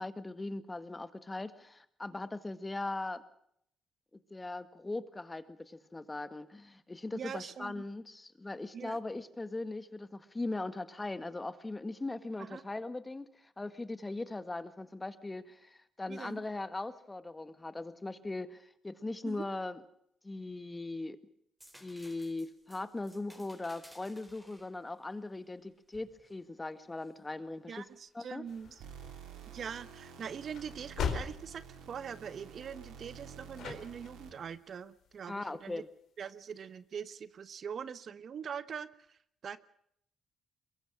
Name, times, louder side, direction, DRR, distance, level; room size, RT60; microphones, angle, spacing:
voice 1, 0.0-3.2 4.3-19.8 20.2-21.2 21.8-27.8 28.1-28.4 35.3-35.9, left 2 dB, 20° left, 12 dB, 1.8 m, -40 dB
voice 2, 7.1-7.8 8.7-9.0 12.4-12.6 16.1-16.4 19.2-19.4 27.7-28.8 29.5-35.8 36.2-39.6, right 7 dB, 55° right, 15 dB, 1.1 m, -43 dB
sound 1, 21.6-27.2 27.7-28.7 30.7-30.9, equal, 5° right, 4.2 m, -60 dB
sound 2, 28.5-35.8, left 7 dB, 70° left, 4.2 m, -43 dB
sound 3, 28.8-34.5, right 7 dB, 90° right, 4.1 m, -50 dB
23.0 x 22.0 x 6.4 m, 0.70 s
cardioid pair, 90°, 0 cm